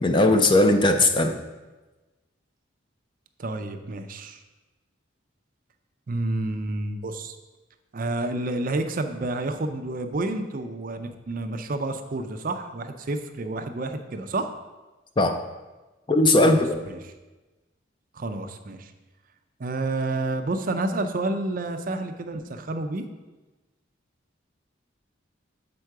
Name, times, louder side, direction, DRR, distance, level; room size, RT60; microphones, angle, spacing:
voice 1, 0.0-1.3 15.2-15.4 16.1-16.7, left 2 dB, 25° left, 6 dB, 0.4 m, -18 dB
voice 2, 3.4-4.4 6.1-7.4 7.9-14.5 16.4-17.1 18.1-18.9 19.6-23.0, right 2 dB, 45° right, 7 dB, 0.5 m, -29 dB
7.7 x 4.5 x 4.7 m, 1.2 s
head